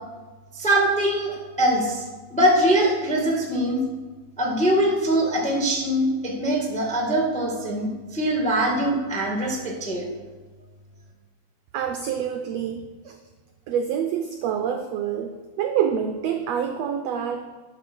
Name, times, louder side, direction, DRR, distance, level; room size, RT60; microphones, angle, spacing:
voice 1, 0.5-2.0 2.3-3.8 4.4-10.1, right 1 dB, 5° left, -1 dB, 0.9 m, -22 dB
voice 2, 11.7-13.2 13.7-17.4, right 8 dB, 80° right, 5 dB, 1.5 m, -27 dB
11.0 x 5.4 x 6.1 m, 1.4 s
omnidirectional pair, 3.6 m